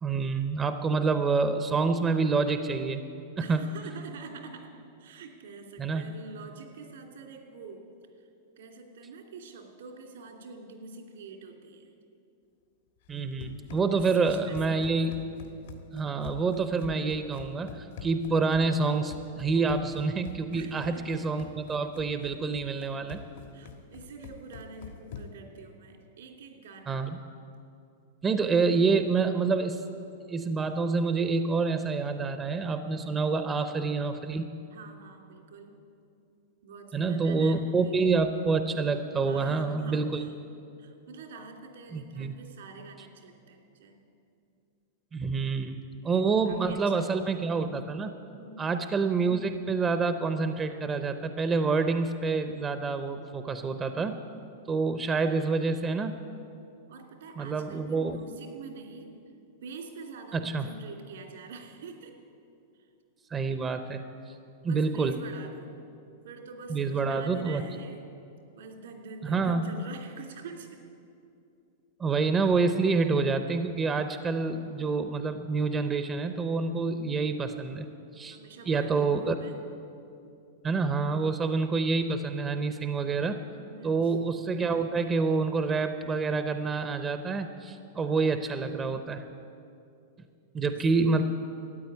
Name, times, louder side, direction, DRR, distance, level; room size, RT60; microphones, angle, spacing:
voice 1, 0.0-3.0 3.5-3.6 5.8-6.0 13.1-15.1 15.9-23.2 26.9-27.2 28.2-29.8 30.3-34.5 36.9-40.3 41.9-42.3 45.1-48.1 48.6-54.2 54.7-56.1 57.4-58.2 60.3-60.7 63.3-64.0 64.6-65.1 66.7-67.6 69.2-69.7 72.0-77.8 78.1-78.4 78.7-79.3 80.6-83.4 83.8-89.2 90.5-91.2, right 4 dB, 15° right, 9 dB, 0.6 m, -27 dB
voice 2, 3.4-7.9 8.6-12.0 13.9-14.8 20.5-21.1 23.5-27.0 34.7-35.8 36.6-38.0 39.2-40.3 40.8-44.0 46.1-47.1 48.4-48.7 56.9-59.2 59.6-62.2 64.6-65.7 66.2-68.0 68.5-70.8 72.7-72.9 78.3-79.6 83.7-84.1 90.7-90.8, right 4 dB, 85° right, 3 dB, 2.8 m, -46 dB
Run, 13.0-25.5, left 6 dB, 75° left, 1.5 m, -46 dB
13.5 x 9.3 x 9.4 m, 2.6 s
supercardioid pair, 150°, 0 cm